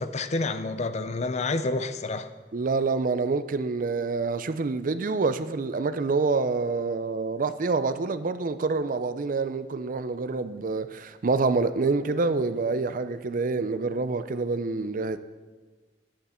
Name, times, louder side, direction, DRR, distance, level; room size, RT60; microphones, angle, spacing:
voice 1, 0.0-2.3, left 3 dB, 40° left, 0.5 m, -29 dB
voice 2, 2.5-15.2, right 3 dB, 50° right, 0.5 m, -27 dB
11.0 x 10.0 x 4.4 m
head